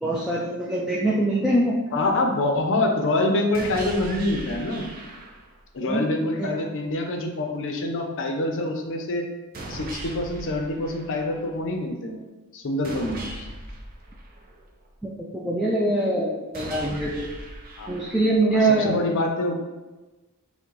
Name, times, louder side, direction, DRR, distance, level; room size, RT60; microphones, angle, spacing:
voice 1, 0.0-1.8 5.8-6.0 6.4-6.5 15.0-17.3 17.9-19.0, right 1 dB, 5° right, -4 dB, 0.4 m, -23 dB
voice 2, 1.9-4.9 5.7-9.3 9.7-12.2 12.5-13.5 17.8-17.9 18.5-19.5, left 2 dB, 60° left, 3 dB, 0.6 m, -26 dB
sound 1, 3.5-5.6 9.5-11.6 12.8-14.9 16.5-18.6, right 1 dB, 40° right, 0.6 m, -38 dB
5.9 x 2.1 x 3.1 m, 1.2 s
head